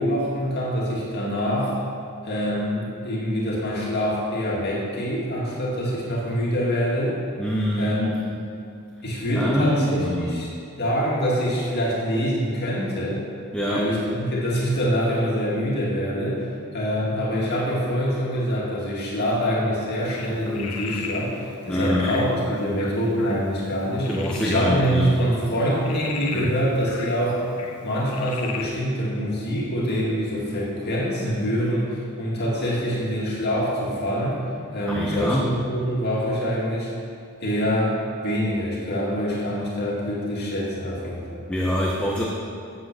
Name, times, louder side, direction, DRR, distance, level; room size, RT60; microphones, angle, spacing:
voice 1, 0.0-1.7 2.2-7.2 7.8-8.4 9.0-10.5 10.8-13.2 13.7-16.5 16.7-27.4 27.8-34.4 34.7-36.9 37.4-41.4, equal, 45° left, -5 dB, 2.3 m, -25 dB
voice 2, 7.4-8.2 9.3-10.5 13.5-13.9 21.7-22.2 24.1-25.2 26.3-26.5 34.9-35.5 41.5-42.3, left 1 dB, 5° left, -4 dB, 0.8 m, -25 dB
Frog, 20.0-28.7, left 4 dB, 90° left, 0.9 m, -37 dB
8.4 x 7.9 x 6.2 m, 2.4 s
head